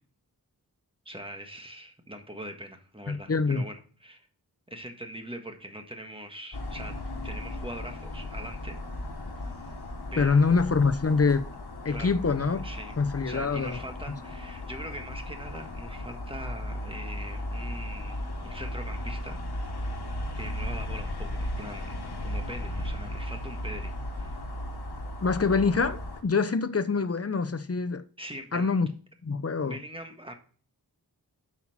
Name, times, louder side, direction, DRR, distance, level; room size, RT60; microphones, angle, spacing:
voice 1, 1.0-4.3 4.7-7.0 7.2-8.8 9.4-9.8 10.1-10.5 11.9-12.2 12.6-12.9 13.2-19.4 20.3-24.4 28.2-28.7 29.5-30.3, right 1 dB, 15° right, 1.6 m, -42 dB
voice 2, 3.1-3.6 10.2-11.5 11.8-12.6 13.0-13.8 25.2-28.0 28.5-28.9 29.2-29.8, left 4 dB, 40° left, 0.7 m, -25 dB
sound 1, 6.5-26.2, left 1 dB, 80° left, 1.6 m, -36 dB
9.1 x 5.7 x 4.1 m
wide cardioid pair, 65°, 39 cm